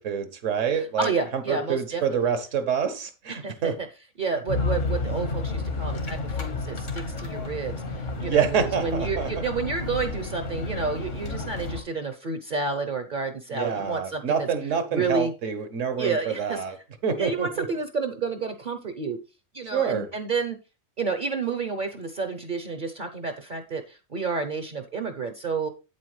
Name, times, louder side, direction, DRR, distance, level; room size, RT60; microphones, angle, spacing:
voice 1, 0.0-1.1 1.5-3.7 8.2-9.3 13.5-16.8 17.0-17.7 19.7-20.1, right 7 dB, 70° right, 1.4 m, -27 dB
voice 2, 0.7-2.3 3.3-3.9 4.2-14.5 14.9-15.3 16.0-16.8 17.2-19.2 19.5-20.6 21.0-25.7, right 4 dB, 45° right, 0.8 m, -30 dB
sound 1, 4.5-11.8, left 3 dB, 70° left, 1.8 m, -31 dB
8.4 x 8.2 x 3.2 m
omnidirectional pair, 1.3 m